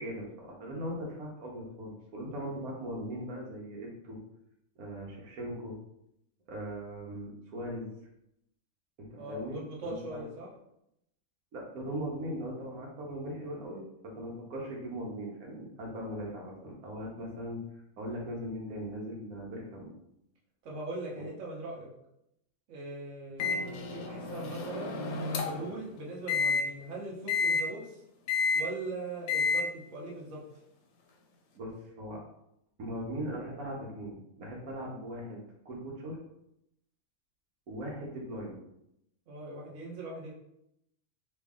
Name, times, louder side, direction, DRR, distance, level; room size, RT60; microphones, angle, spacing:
voice 1, 0.0-4.2 4.8-5.8 6.5-7.9 9.0-10.2 11.5-17.6 18.0-19.9 21.2-21.3 31.5-32.2 32.8-36.2 37.7-38.6, equal, 85° right, -2 dB, 1.3 m, -39 dB
voice 2, 9.2-10.5 20.6-21.9 22.7-25.0 25.4-28.0 28.5-30.4 39.3-40.3, right 2 dB, 60° right, -3 dB, 1.2 m, -40 dB
Microwave oven, 23.4-25.7 26.3-26.6 27.3-27.6 28.3-28.6 29.3-29.6, left 5 dB, 85° left, 1.0 m, -30 dB
3.2 x 2.7 x 3.5 m, 0.80 s
omnidirectional pair, 1.5 m